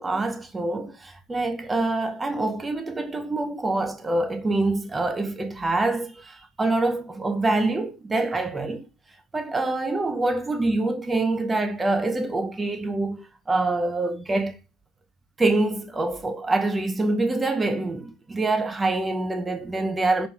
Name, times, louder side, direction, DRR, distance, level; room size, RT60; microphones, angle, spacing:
voice 1, 0.0-8.9 9.3-14.6 15.4-20.3, right 2 dB, 15° right, 0.6 m, -25 dB
4.9 x 3.0 x 2.4 m
supercardioid pair, 110°, 0 cm